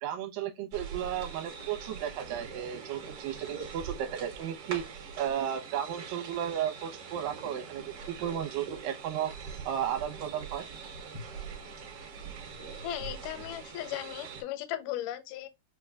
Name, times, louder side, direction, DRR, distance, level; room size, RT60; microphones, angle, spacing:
voice 1, 0.0-4.8 5.2-9.3 9.7-10.7, right 10 dB, 80° right, 2.3 m, -34 dB
sound 1, 0.7-14.4, right 5 dB, 60° right, 1.6 m, -43 dB
voice 2, 12.8-15.5, left 13 dB, 80° left, 1.9 m, -37 dB
6.2 x 2.2 x 2.3 m
omnidirectional pair, 4.2 m